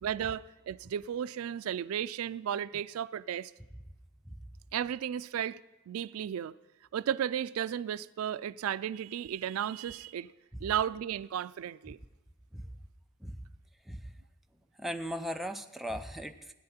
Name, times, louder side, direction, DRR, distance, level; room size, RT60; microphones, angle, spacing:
voice 1, 0.0-3.5 4.7-5.6 5.9-6.5 6.9-10.3 10.6-12.0, right 9 dB, 80° right, 0.3 m, -34 dB
voice 2, 14.8-16.5, equal, ahead, 0.4 m, -38 dB
17.5 x 9.7 x 4.3 m
head